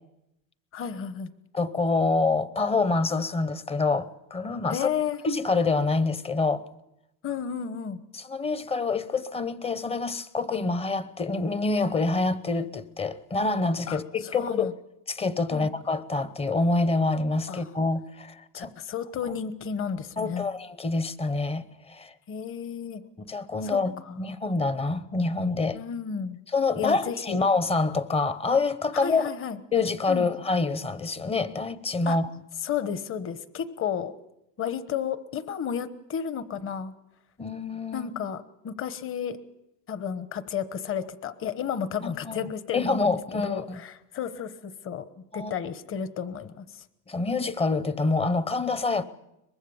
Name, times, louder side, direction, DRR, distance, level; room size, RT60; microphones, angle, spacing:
voice 1, 0.7-1.3 4.7-5.2 7.2-8.0 13.9-14.7 15.5-15.7 17.5-17.7 18.5-20.5 22.3-23.0 23.6-23.8 24.1-24.2 25.7-26.4 26.8-27.4 29.0-29.6 30.1-30.3 32.1-32.2 32.6-34.1 34.6-36.9 37.9-39.4 39.9-45.0 45.3-46.8, left 8 dB, 30° left, 1.2 m, -32 dB
voice 2, 1.5-4.9 5.2-6.6 8.1-14.8 15.1-18.7 20.2-22.1 23.2-23.9 24.2-25.8 26.5-29.2 29.7-32.3 37.4-38.1 42.0-43.8 45.3-45.5 47.1-49.0, left 3 dB, 15° left, 0.8 m, -26 dB
23.5 x 21.0 x 7.2 m
cardioid pair, 150°, 41 cm